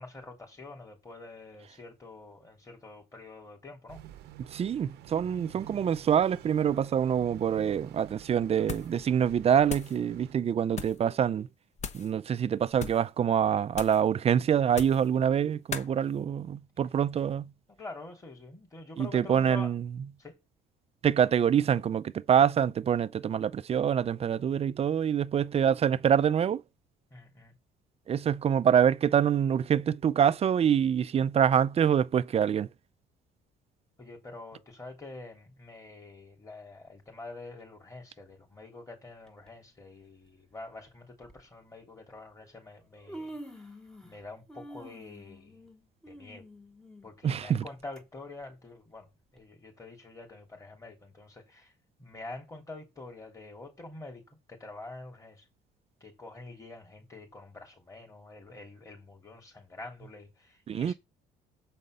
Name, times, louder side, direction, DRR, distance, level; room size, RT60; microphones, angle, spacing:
voice 1, 0.0-4.0 17.8-19.7 20.2-20.3 27.1-27.5 34.0-43.4 44.0-45.6 46.1-46.4 47.0-49.1 49.3-51.7 52.0-54.2 54.5-55.4 56.0-60.9, left 3 dB, 20° left, 3.4 m, -46 dB
sound 1, 3.9-10.3, right 11 dB, 80° right, 0.9 m, -49 dB
voice 2, 4.4-11.5 11.9-17.5 19.0-20.0 21.0-26.6 28.1-32.7 47.2-47.6 60.7-60.9, right 8 dB, 35° right, 0.5 m, -25 dB
sound 2, 8.6-9.0 9.3-10.0 10.7-11.0 11.8-12.1 12.7-13.1 13.7-14.1 14.7-15.1 15.7-15.9, left 6 dB, 40° left, 0.9 m, -39 dB
Human voice, 39.3-39.5 40.5-40.6 41.2-41.4 42.4-42.5 42.8-44.2 44.5-48.0 48.4-48.5 49.4-49.5, right 1 dB, 5° left, 1.2 m, -47 dB
7.4 x 5.3 x 6.7 m
cardioid pair, 110°, 17 cm